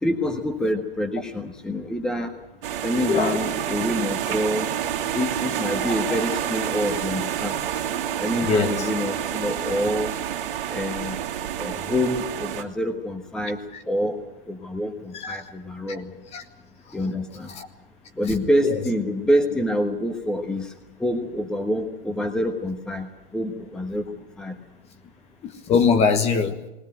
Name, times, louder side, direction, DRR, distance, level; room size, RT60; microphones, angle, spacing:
voice 1, 0.0-2.3 2.8-4.7 5.1-7.6 8.2-10.1 10.7-11.2 11.6-13.6 13.9-14.2 14.5-16.1 16.9-17.5 18.2-20.7 21.0-24.0 24.4-24.6, equal, ahead, 6 dB, 1.2 m, -26 dB
sound 1, 2.6-12.6, right 10 dB, 60° right, 2.6 m, -28 dB
voice 2, 3.1-3.5 5.7-6.2 8.4-8.9 13.7-13.8 15.1-15.4 15.9-16.0 16.3-16.4 16.9-17.0 17.5-17.7 18.3-18.4 18.6-18.8 25.4-26.6, left 5 dB, 20° left, 8 dB, 1.4 m, -23 dB
20.0 x 19.0 x 9.1 m, 0.96 s
hypercardioid pair, 130°, 29 cm